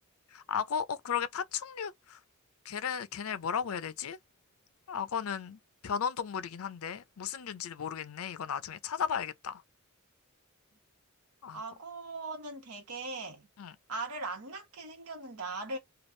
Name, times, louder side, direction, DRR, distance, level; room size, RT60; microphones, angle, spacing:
voice 1, 0.3-2.2 2.7-4.2 4.9-9.6 11.4-11.6 13.6-13.7, left 7 dB, 70° left, 0.5 m, -35 dB
voice 2, 11.5-13.5 13.9-15.8, right 3 dB, 85° right, 1.1 m, -39 dB
3.4 x 2.4 x 2.6 m
head